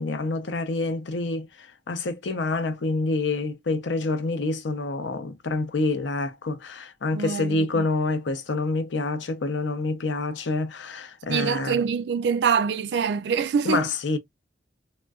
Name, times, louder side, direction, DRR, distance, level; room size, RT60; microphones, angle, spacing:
voice 1, 0.0-11.8 13.6-14.2, left 3 dB, 90° left, 0.6 m, -27 dB
voice 2, 7.1-7.8 11.3-13.8, right 6 dB, 70° right, 0.3 m, -25 dB
3.7 x 2.1 x 2.2 m
head